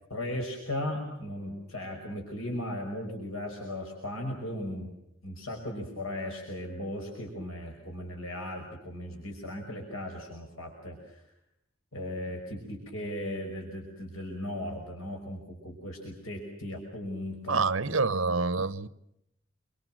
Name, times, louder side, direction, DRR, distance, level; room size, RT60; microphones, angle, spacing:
voice 1, 0.1-4.9 5.2-11.2 11.9-17.7, left 1 dB, 85° left, 5.7 m, -37 dB
voice 2, 17.5-18.9, right 4 dB, 65° right, 1.0 m, -27 dB
27.5 x 24.5 x 7.6 m
head